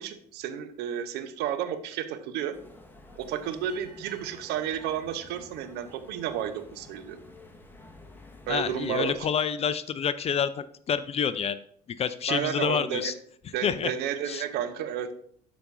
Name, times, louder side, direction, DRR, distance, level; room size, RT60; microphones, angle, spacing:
voice 1, 0.0-2.6 3.2-7.2 8.5-9.3 12.3-13.2 13.5-15.1, right 9 dB, 55° right, 10 dB, 0.9 m, -32 dB
sound 1, 2.5-9.2, left 2 dB, 10° left, 1.4 m, -51 dB
sound 2, 3.7-6.6, right 3 dB, 90° right, 1.2 m, -58 dB
voice 2, 8.5-10.5 10.9-11.6 12.0-13.1 13.6-13.9 14.3-14.4, left 7 dB, 30° left, 14 dB, 0.5 m, -27 dB
12.0 x 5.0 x 2.6 m, 0.62 s
figure-of-eight pair, 60°, 20 cm